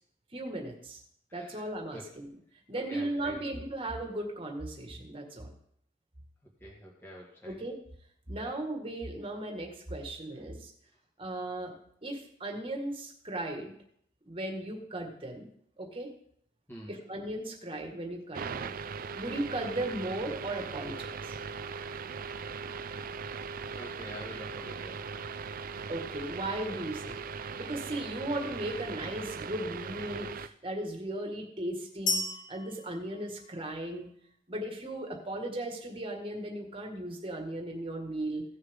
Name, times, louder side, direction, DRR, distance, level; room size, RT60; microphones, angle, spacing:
voice 1, 0.3-1.0 1.3-2.3 2.7-5.5 7.5-7.8 8.3-10.7 11.2-11.7 12.0-13.7 14.3-15.5 15.8-16.1 16.9-18.7 19.1-21.4 25.9-27.2 27.6-32.2 32.5-34.1 34.5-38.4, right 1 dB, 30° right, 2 dB, 1.8 m, -36 dB
voice 2, 1.3-2.1 2.7-3.6 6.4-7.6 8.3-8.5 9.9-10.0 10.8-10.9 16.7-17.0 23.7-25.2 28.2-28.3, equal, 10° left, -4 dB, 2.0 m, -47 dB
sound 1, 18.3-30.5, right 5 dB, 50° right, 0.4 m, -39 dB
sound 2, 32.1-34.0, left 2 dB, 45° left, 1.5 m, -34 dB
16.5 x 6.5 x 3.7 m, 0.67 s
head